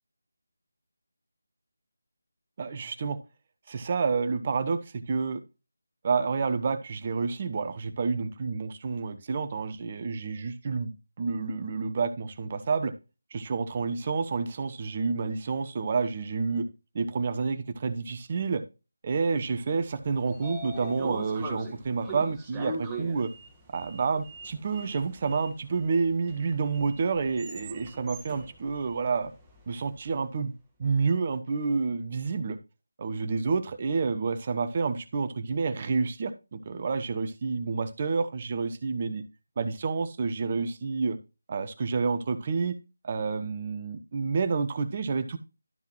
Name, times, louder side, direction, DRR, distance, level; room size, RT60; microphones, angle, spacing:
voice 1, 2.6-3.2 3.7-4.8 5.1-5.4 6.0-10.9 11.2-12.9 13.3-16.7 16.9-18.6 19.0-23.3 23.7-29.3 29.7-30.5 30.8-32.6 33.0-39.2 39.6-41.2 41.5-42.7 43.0-45.4, right 4 dB, 35° right, 11 dB, 0.8 m, -29 dB
Sliding door, 19.9-30.0, right 1 dB, 10° right, 1.3 m, -42 dB
12.0 x 5.7 x 3.0 m, 0.29 s
figure-of-eight pair, 160°, 0 cm